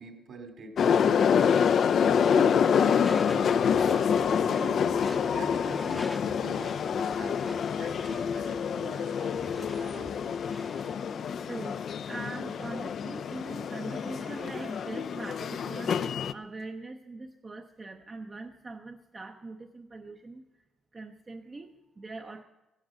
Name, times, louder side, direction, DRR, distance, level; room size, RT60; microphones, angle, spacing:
voice 1, 0.0-7.4 7.8-10.2, right 3 dB, 60° right, 5 dB, 3.0 m, -45 dB
sound 1, 0.8-16.3, left 7 dB, 60° left, 0.5 m, -27 dB
Door / Screech, 2.8-11.1, equal, ahead, 0.9 m, -46 dB
voice 2, 11.4-11.8 12.1-16.0 16.3-20.4 20.9-22.4, right 3 dB, 30° right, 5 dB, 0.8 m, -42 dB
16.0 x 11.5 x 6.4 m, 1.0 s
cardioid pair, 90°, 0 cm